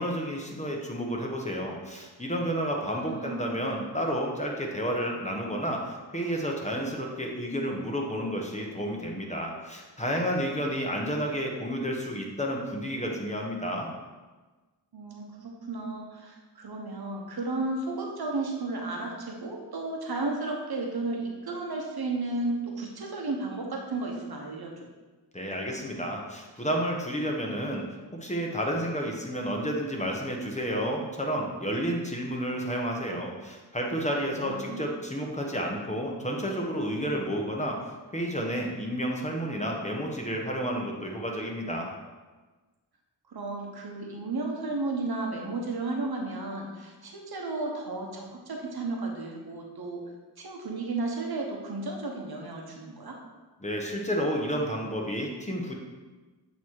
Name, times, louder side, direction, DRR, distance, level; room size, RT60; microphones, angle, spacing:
voice 1, 0.0-13.9 25.3-27.8 28.2-37.8 38.1-41.9 53.6-55.7, equal, 15° left, -1 dB, 1.1 m, -31 dB
voice 2, 2.8-3.5 14.9-24.9 34.3-34.9 43.3-50.0 50.4-53.2, right 2 dB, 60° right, 1 dB, 1.1 m, -33 dB
7.9 x 3.2 x 4.6 m, 1.3 s
cardioid pair, 65°, 43 cm